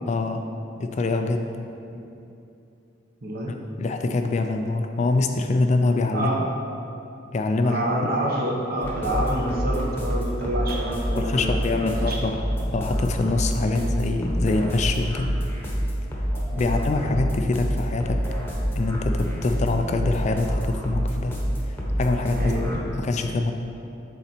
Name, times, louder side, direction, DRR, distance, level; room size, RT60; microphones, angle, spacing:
voice 1, 0.1-0.4 0.8-1.5 3.5-6.3 7.3-7.8 11.1-12.4 12.7-15.3 15.6-15.7 16.6-18.2 18.8-21.3 21.6-22.7 23.0-23.5, left 3 dB, 35° left, 5 dB, 0.3 m, -25 dB
voice 2, 3.2-3.6 6.1-6.4 7.6-12.2 13.7-14.0 16.5-16.8 22.3-22.8, right 1 dB, 50° right, -2 dB, 0.9 m, -28 dB
sound 1, 8.8-22.8, equal, 10° left, 0.9 m, -27 dB
7.0 x 4.1 x 4.3 m, 2.8 s
head